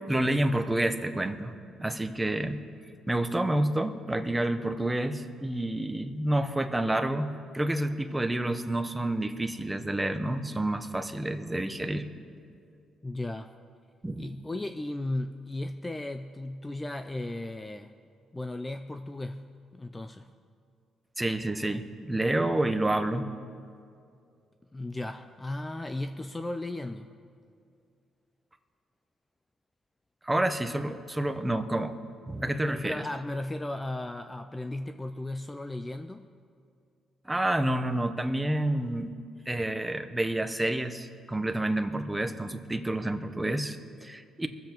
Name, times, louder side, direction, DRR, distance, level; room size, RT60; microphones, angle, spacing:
voice 1, 0.1-2.6 3.1-12.0 14.0-14.3 21.2-23.2 30.2-31.9 32.3-33.0 37.3-39.1 39.5-44.5, right 1 dB, 10° right, 8 dB, 0.9 m, -29 dB
voice 2, 13.0-13.5 14.2-17.9 18.3-20.3 24.7-27.1 32.4-36.3, left 2 dB, 15° left, 8 dB, 0.5 m, -36 dB
23.0 x 7.7 x 4.5 m, 2.4 s
cardioid pair, 90°, 0 cm